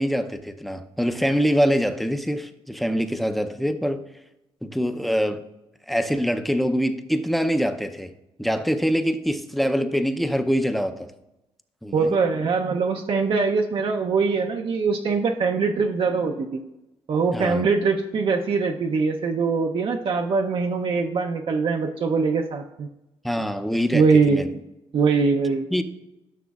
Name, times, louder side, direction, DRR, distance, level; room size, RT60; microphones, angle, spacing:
voice 1, 0.0-4.0 4.6-5.4 5.9-8.1 8.4-11.1 11.8-12.1 17.3-17.7 23.2-24.5 25.7-25.8, equal, ahead, 7 dB, 0.6 m, -24 dB
voice 2, 11.9-16.6 17.1-22.9 23.9-24.4 24.9-25.7, right 4 dB, 55° right, 2 dB, 0.6 m, -22 dB
13.5 x 6.1 x 2.4 m, 0.94 s
cardioid pair, 90°, 11 cm